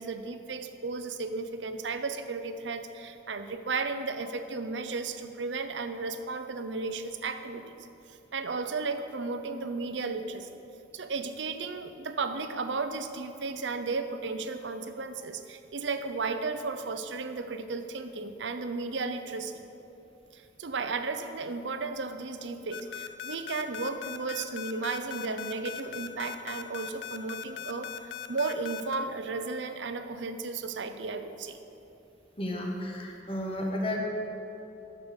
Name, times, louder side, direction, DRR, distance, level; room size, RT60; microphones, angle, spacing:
voice 1, 0.0-10.5 10.9-19.6 20.3-27.9 28.3-31.6, right 4 dB, 75° right, 9 dB, 0.6 m, -34 dB
sound 1, 22.7-29.0, left 10 dB, 90° left, 0.5 m, -39 dB
voice 2, 32.4-34.0, left 1 dB, 30° left, -1 dB, 1.4 m, -32 dB
10.5 x 6.9 x 6.4 m, 2.9 s
head